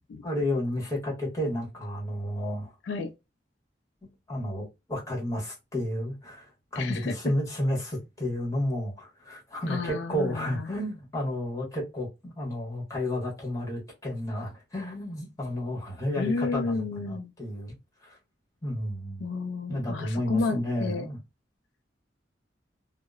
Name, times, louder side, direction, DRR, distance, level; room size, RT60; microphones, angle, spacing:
voice 1, 0.2-2.7 4.3-17.7 18.0-18.2 18.6-19.3 19.7-21.2, left 1 dB, 20° left, 1.2 m, -31 dB
voice 2, 6.8-7.2 9.7-10.7 16.2-17.3 19.2-21.1, left 4 dB, 75° left, 0.3 m, -31 dB
2.8 x 2.0 x 2.3 m
head